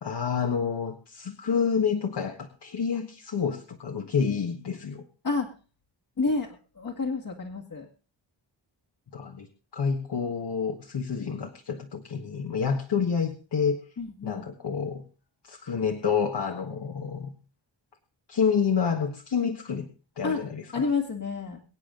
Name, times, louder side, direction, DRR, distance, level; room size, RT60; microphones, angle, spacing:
voice 1, 0.0-5.0 9.1-9.5 9.7-13.8 14.2-15.0 15.4-17.4 18.3-19.9 20.2-20.9, left 6 dB, 65° left, 4 dB, 1.6 m, -28 dB
voice 2, 6.2-7.9 14.0-14.4 20.2-20.4 20.7-21.6, left 4 dB, 45° left, 1 dB, 2.0 m, -29 dB
24.0 x 9.0 x 3.8 m, 0.36 s
wide cardioid pair, 150°, 45 cm